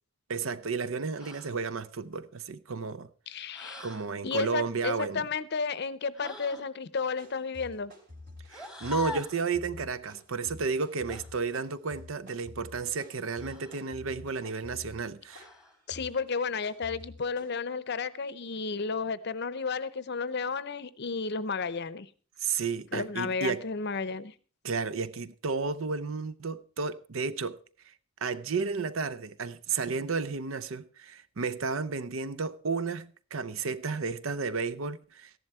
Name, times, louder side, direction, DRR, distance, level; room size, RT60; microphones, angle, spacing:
voice 1, 0.3-3.1 3.8-5.3 8.5-15.5 22.4-23.6 24.6-27.6 27.9-28.0 28.2-35.3, right 4 dB, 70° right, 0.7 m, -32 dB
sound 1, 1.1-1.5 3.5-4.1 6.1-6.7 8.5-9.4 11.1-11.3 13.4-13.9 15.3-15.8, left 4 dB, 5° right, 1.4 m, -41 dB
voice 2, 3.3-3.9 4.2-7.9 15.9-22.1 22.9-24.3, left 5 dB, 50° left, 0.6 m, -32 dB
sound 2, 7.1-17.5, left 2 dB, 55° right, 3.4 m, -49 dB
14.0 x 11.0 x 4.3 m
head